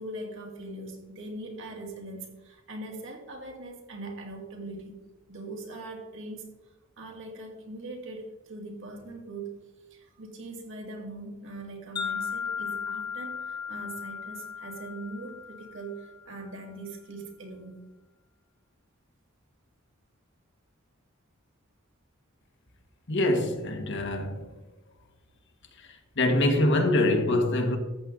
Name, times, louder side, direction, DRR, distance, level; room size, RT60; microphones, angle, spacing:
voice 1, 0.0-5.0 5.3-6.5 7.0-9.5 9.9-17.9, right 2 dB, 65° right, 2.3 m, -41 dB
Wind chime, 12.0-16.2, left 6 dB, 20° left, 1.2 m, -36 dB
voice 2, 23.1-24.5 25.8-25.9 26.2-27.8, left 1 dB, 60° left, 1.6 m, -24 dB
13.5 x 7.7 x 3.8 m
head